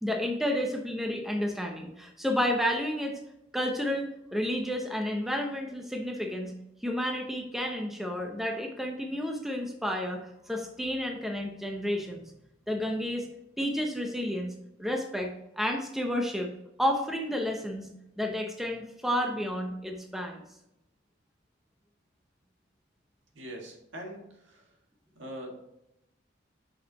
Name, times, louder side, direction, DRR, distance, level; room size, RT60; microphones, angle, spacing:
voice 1, 0.0-3.2 3.5-6.5 6.8-12.2 12.7-13.3 13.6-14.5 14.8-16.5 16.8-17.9 18.2-20.4, equal, ahead, 2 dB, 0.6 m, -31 dB
voice 2, 23.3-24.2 24.5-24.6 25.2-25.6, equal, 75° right, 0 dB, 1.8 m, -41 dB
6.3 x 5.6 x 3.0 m, 0.85 s
head